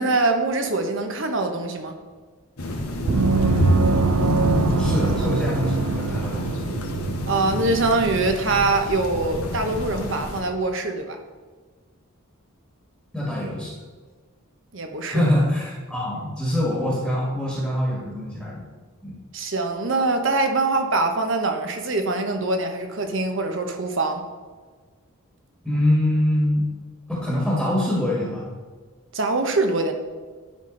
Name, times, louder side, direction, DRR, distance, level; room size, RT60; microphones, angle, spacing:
voice 1, 0.0-2.0 7.3-11.2 14.7-15.3 19.3-24.2 29.1-29.9, right 3 dB, 55° right, 5 dB, 1.0 m, -23 dB
sound 1, 2.6-10.4, left 1 dB, 85° left, 1.3 m, -26 dB
Gong, 3.1-8.3, right 5 dB, 85° right, 0.4 m, -25 dB
voice 2, 4.8-6.6 13.1-13.7 15.0-18.6 19.0-19.2 25.6-26.7 27.1-28.5, left 1 dB, ahead, -5 dB, 1.6 m, -24 dB
11.0 x 5.9 x 3.9 m, 1.4 s
head